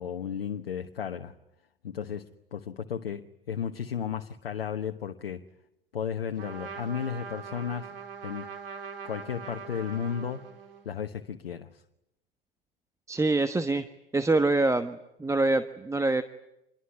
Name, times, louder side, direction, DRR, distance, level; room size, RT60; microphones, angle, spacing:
voice 1, 0.0-1.3 1.8-5.5 5.9-7.9 8.2-8.5 9.0-10.5 10.8-11.8, left 8 dB, 80° left, 1.2 m, -34 dB
Trumpet, 6.3-10.9, right 6 dB, 75° right, 4.3 m, -42 dB
voice 2, 13.1-13.9 14.1-16.2, right 2 dB, 10° right, 1.2 m, -25 dB
27.0 x 22.5 x 9.7 m
figure-of-eight pair, 80°, 29 cm